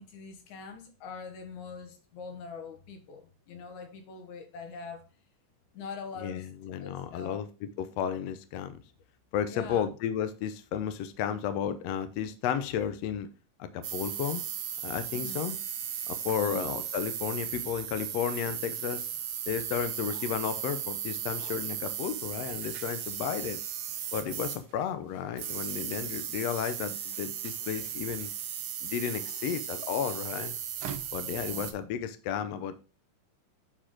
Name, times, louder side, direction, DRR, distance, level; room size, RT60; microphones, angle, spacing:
voice 1, 0.0-5.1 5.7-6.5 6.8-7.4 9.5-9.8 15.1-15.5 16.4-16.7 31.4-31.7, left 5 dB, 65° left, 2.7 m, -43 dB
voice 2, 6.2-8.8 9.3-13.3 13.6-14.4 14.8-15.6 16.1-19.1 19.5-23.6 24.1-28.3 28.8-30.6 31.1-32.7, left 8 dB, 85° left, 1.5 m, -33 dB
sound 1, 13.8-24.9 25.3-31.7, right 9 dB, 85° right, 1.2 m, -36 dB
8.8 x 4.8 x 3.8 m
omnidirectional pair, 3.8 m